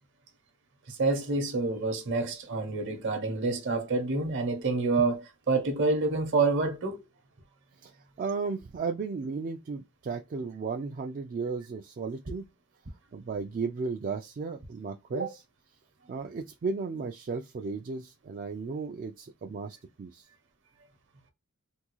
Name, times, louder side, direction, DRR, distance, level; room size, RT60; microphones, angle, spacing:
voice 1, 0.9-7.0 15.1-15.3, right 3 dB, 55° right, 0.8 m, -28 dB
voice 2, 8.2-12.5 13.1-15.4 16.1-20.3, right 4 dB, 40° right, 0.3 m, -35 dB
3.5 x 2.3 x 3.0 m
head